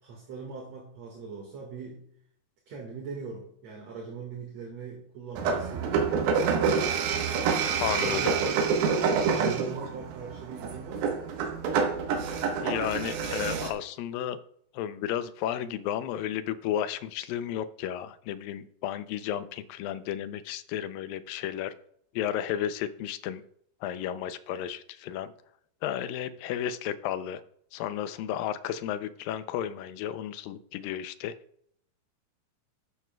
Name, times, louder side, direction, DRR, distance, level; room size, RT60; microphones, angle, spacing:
voice 1, 0.0-2.0 2.7-6.1 8.0-8.7 9.1-11.2, right 5 dB, 50° right, 0 dB, 2.5 m, -41 dB
sound 1, 5.4-13.7, right 6 dB, 85° right, 3.1 m, -27 dB
voice 2, 7.8-8.4 12.6-14.4 14.7-21.7 22.1-23.4 23.8-25.3 25.8-27.4 27.7-31.3, left 10 dB, 80° left, 12 dB, 2.2 m, -33 dB
12.5 x 11.5 x 2.3 m, 0.67 s
omnidirectional pair, 4.3 m